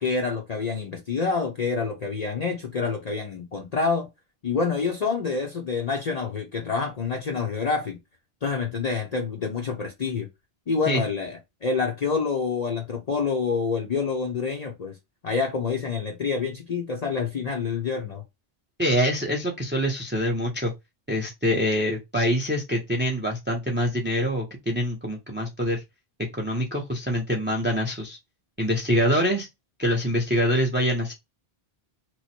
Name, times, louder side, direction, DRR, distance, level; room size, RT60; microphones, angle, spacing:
voice 1, 0.0-4.1 4.4-8.0 8.4-10.3 10.7-15.0 15.2-18.2, left 5 dB, 45° left, 0.7 m, -27 dB
voice 2, 18.8-20.7 21.1-25.8 26.3-28.2 28.6-29.5 29.8-31.1, equal, 15° right, 0.6 m, -25 dB
3.1 x 2.1 x 4.1 m
omnidirectional pair, 1.0 m